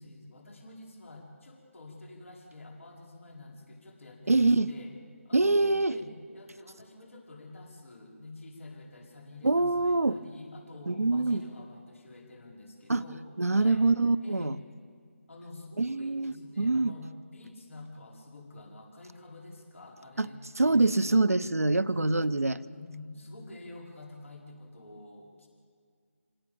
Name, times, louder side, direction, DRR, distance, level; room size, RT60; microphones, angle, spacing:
voice 1, 0.0-4.9 5.3-13.2 13.5-13.8 14.2-14.6 15.3-20.9 21.9-25.5, left 2 dB, 60° left, 0 dB, 5.3 m, -48 dB
voice 2, 4.3-4.7 5.3-6.0 9.4-10.2 10.9-11.4 12.9-13.0 13.4-14.6 15.8-16.9 20.2-20.3 20.6-22.6, right 2 dB, 80° right, 12 dB, 0.9 m, -25 dB
26.0 x 18.0 x 7.1 m, 2.2 s
figure-of-eight pair, 155°, 8 cm